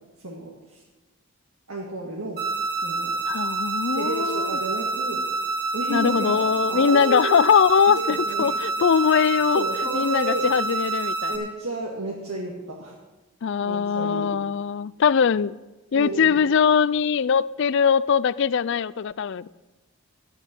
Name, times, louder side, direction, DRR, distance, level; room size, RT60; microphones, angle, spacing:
voice 1, 0.2-0.8 1.7-2.4 2.8-3.2 3.9-5.2 5.7-7.4 7.9-8.5 9.5-10.5 11.3-13.0 13.6-14.4 15.9-16.4, right 2 dB, 75° right, 2.0 m, -32 dB
sound 1, 2.4-11.4, right 3 dB, 40° right, 2.3 m, -27 dB
voice 2, 3.3-4.5 5.9-9.7 9.9-11.3 13.4-15.6 15.9-19.5, left 6 dB, 55° left, 0.4 m, -21 dB
13.0 x 11.0 x 6.0 m
head